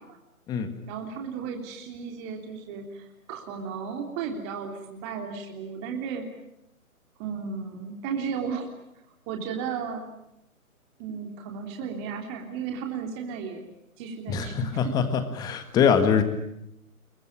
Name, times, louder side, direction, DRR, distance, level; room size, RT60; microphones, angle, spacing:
voice 1, 0.9-6.3 7.2-8.7 9.3-10.1 11.0-13.6 14.0-15.0, right 6 dB, 20° right, 2 dB, 3.3 m, -34 dB
voice 2, 14.3-16.2, left 7 dB, 10° left, 9 dB, 1.6 m, -23 dB
26.5 x 23.5 x 8.7 m, 0.84 s
figure-of-eight pair, 150°, 43 cm